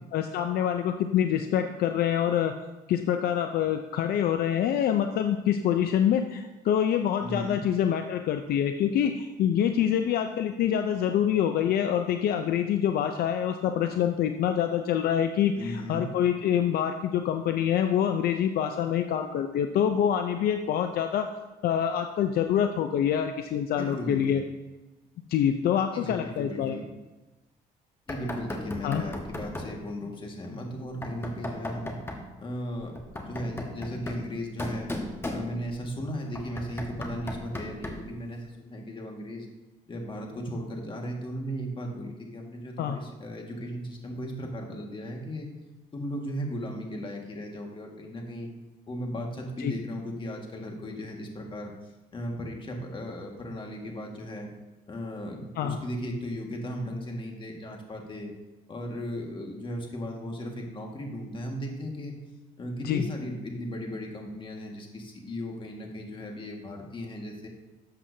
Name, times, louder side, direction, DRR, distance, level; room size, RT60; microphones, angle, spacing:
voice 1, 0.1-2.5 2.9-21.3 21.6-24.4 25.3-26.8 28.8-29.0 42.8-43.0 49.6-49.7 55.6-55.8 62.8-63.1, left 9 dB, 65° left, 6 dB, 0.6 m, -26 dB
voice 2, 7.2-7.6 15.6-16.0 23.8-24.4 25.9-26.8 28.1-31.9 32.4-34.9 35.2-39.5 39.9-45.5 45.9-48.5 48.9-51.7 52.1-54.5 54.9-58.3 58.7-62.1 62.6-67.5, equal, 30° left, 1 dB, 1.8 m, -36 dB
Knock, 28.1-29.8 31.0-32.3 32.9-35.8 36.3-38.1, left 1 dB, 15° left, 1.3 m, -36 dB
12.5 x 7.5 x 2.8 m, 1.1 s
cardioid pair, 110°, 17 cm